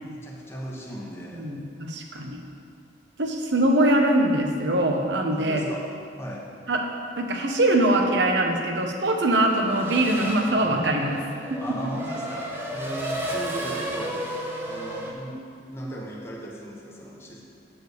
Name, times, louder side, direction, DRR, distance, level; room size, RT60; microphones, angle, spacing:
voice 1, 0.0-1.5 5.3-6.5 11.6-14.2 14.7-17.4, equal, 15° left, -3 dB, 0.9 m, -37 dB
voice 2, 1.3-2.4 3.2-5.6 6.7-6.8 7.2-11.2 11.5-11.6, right 1 dB, 65° right, 2 dB, 0.9 m, -22 dB
Race car auto racing / Accelerating revving vroom, 9.4-15.1, right 1 dB, 10° right, 0.8 m, -33 dB
8.4 x 4.5 x 6.6 m, 2.3 s
head